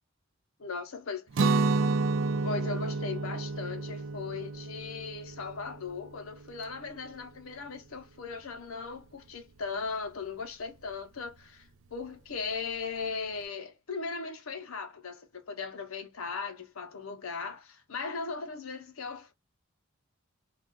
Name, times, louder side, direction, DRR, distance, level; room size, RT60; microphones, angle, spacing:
voice 1, 0.6-1.3 2.4-19.3, left 5 dB, 85° left, 0.7 m, -38 dB
Guitar, 1.3-7.2, right 3 dB, 65° right, 0.4 m, -30 dB
2.4 x 2.3 x 3.7 m
head